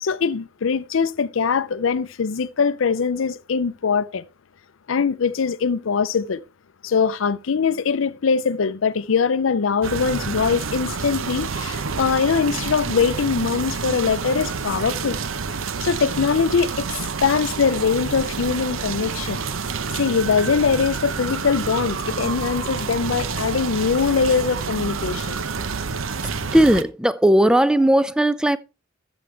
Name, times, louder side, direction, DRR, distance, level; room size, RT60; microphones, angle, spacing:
voice 1, 0.0-4.2 4.9-6.4 6.8-15.2 15.8-19.4 19.9-25.4, left 5 dB, 70° left, 0.5 m, -22 dB
sound 1, 9.8-26.8, right 5 dB, 75° right, 0.8 m, -28 dB
voice 2, 26.5-28.6, right 1 dB, 5° right, 0.4 m, -17 dB
13.0 x 8.0 x 3.3 m
head